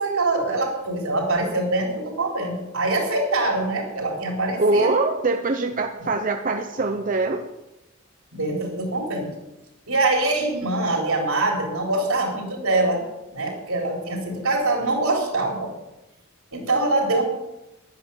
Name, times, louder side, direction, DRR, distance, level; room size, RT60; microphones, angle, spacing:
voice 1, 0.0-4.9 6.0-6.1 8.3-9.3 9.9-13.1 13.3-15.7 16.5-17.2, right 2 dB, 80° right, 0 dB, 4.2 m, -24 dB
voice 2, 4.6-7.5, right 3 dB, 40° right, 5 dB, 0.7 m, -23 dB
11.0 x 10.0 x 7.1 m, 0.97 s
head